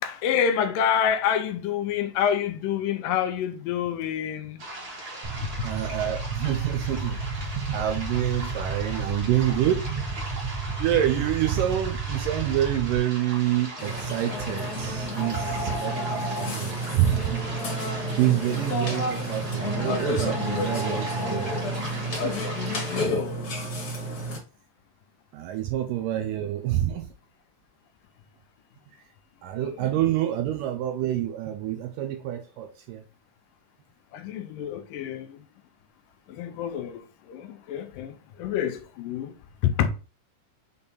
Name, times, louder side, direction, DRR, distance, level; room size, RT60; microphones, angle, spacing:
voice 1, 0.0-4.6 22.2-23.4 29.6-29.9 34.1-35.4 36.3-39.3 39.6-39.9, left 9 dB, 80° left, 2.2 m, -28 dB
creek crooked creek, 4.6-23.1, right 1 dB, 40° right, 1.5 m, -39 dB
sound 1, 5.2-13.0, right 4 dB, 60° right, 2.0 m, -32 dB
voice 2, 5.6-10.5 10.8-17.4 17.7-21.6 25.3-27.1 29.4-33.0, right 12 dB, 80° right, 2.0 m, -27 dB
Burping eructation, 13.8-24.4, equal, 45° left, 1.4 m, -30 dB
6.9 x 3.5 x 4.1 m
omnidirectional pair, 4.3 m